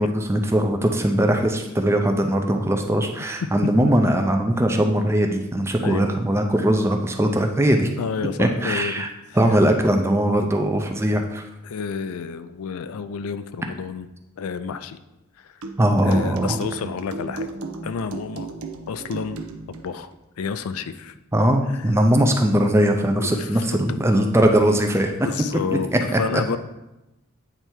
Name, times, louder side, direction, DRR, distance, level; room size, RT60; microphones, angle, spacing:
voice 1, 0.0-7.9 8.4-9.1 9.4-11.4 15.8-16.6 21.3-25.2, right 1 dB, 10° right, 4 dB, 0.5 m, -20 dB
voice 2, 8.0-9.6 11.6-14.1 14.4-15.0 15.4-15.6 16.0-17.5 17.8-18.5 18.9-19.4 19.7-20.1 20.4-21.1 21.7-21.9 23.2-24.0 25.2-26.6, left 5 dB, 80° left, 11 dB, 0.4 m, -30 dB
sound 1, 15.6-19.9, right 3 dB, 80° right, 0.6 m, -35 dB
8.8 x 3.3 x 4.5 m, 0.97 s
head